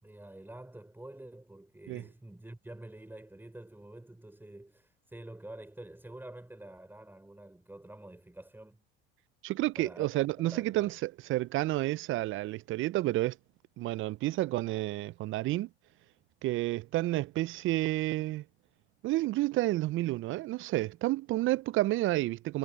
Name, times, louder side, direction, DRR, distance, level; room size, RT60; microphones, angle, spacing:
voice 1, 0.0-8.8 9.8-10.1 10.4-11.0, right 1 dB, 5° right, 5.5 m, -48 dB
voice 2, 9.4-13.4 13.8-15.7 16.4-18.4 19.0-22.6, right 17 dB, 45° right, 0.5 m, -30 dB
hypercardioid pair, 80°, 29 cm